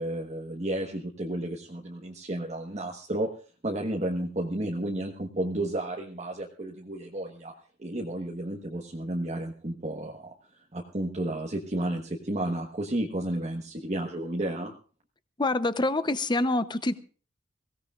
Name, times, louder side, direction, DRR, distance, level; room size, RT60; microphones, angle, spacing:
voice 1, 0.0-3.3 3.6-7.5 7.8-10.3 10.7-14.7, right 1 dB, 35° right, 0 dB, 1.3 m, -32 dB
voice 2, 15.4-16.9, left 2 dB, 25° left, 12 dB, 0.8 m, -26 dB
23.0 x 16.5 x 2.4 m, 0.39 s
head